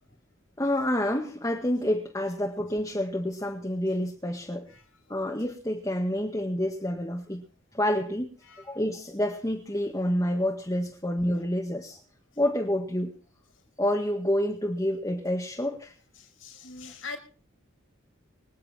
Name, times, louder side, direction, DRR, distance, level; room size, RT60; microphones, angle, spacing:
voice 1, 0.6-4.7 5.1-7.4 7.7-12.0 12.4-13.1 13.8-16.0, left 1 dB, 15° left, 1.9 m, -28 dB
voice 2, 16.2-17.2, left 4 dB, 75° left, 5.2 m, -42 dB
25.5 x 9.8 x 4.4 m
head